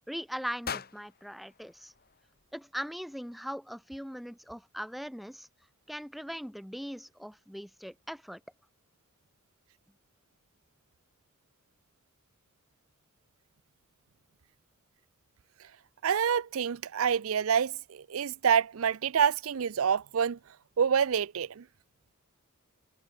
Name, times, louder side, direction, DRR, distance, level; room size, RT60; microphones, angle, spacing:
voice 1, 0.0-1.9 2.5-5.5 5.9-8.4, equal, ahead, 4.3 m, -40 dB
sound 1, 0.6-2.8, left 6 dB, 45° left, 3.6 m, -43 dB
voice 2, 16.0-20.4 20.8-21.6, right 7 dB, 70° right, 0.5 m, -27 dB
head